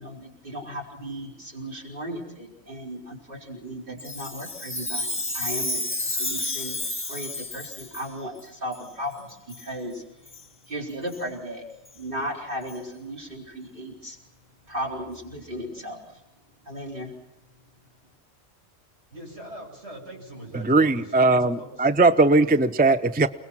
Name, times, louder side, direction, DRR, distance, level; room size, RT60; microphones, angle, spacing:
voice 1, 0.0-6.8 7.1-10.0 10.7-11.6 11.9-14.2 14.7-16.2 16.6-17.1, equal, 50° right, -2 dB, 4.6 m, -36 dB
Chime, 4.0-8.1 8.7-8.8 9.5-9.7 10.3-10.4 11.1-11.2 11.9-12.0 12.7-12.8, left 2 dB, 10° left, 1.6 m, -31 dB
voice 2, 19.1-21.9, right 1 dB, 85° right, -1 dB, 7.9 m, -41 dB
voice 3, 20.5-23.3, right 3 dB, 10° right, 12 dB, 0.5 m, -19 dB
29.0 x 20.0 x 6.2 m, 0.98 s
omnidirectional pair, 1.1 m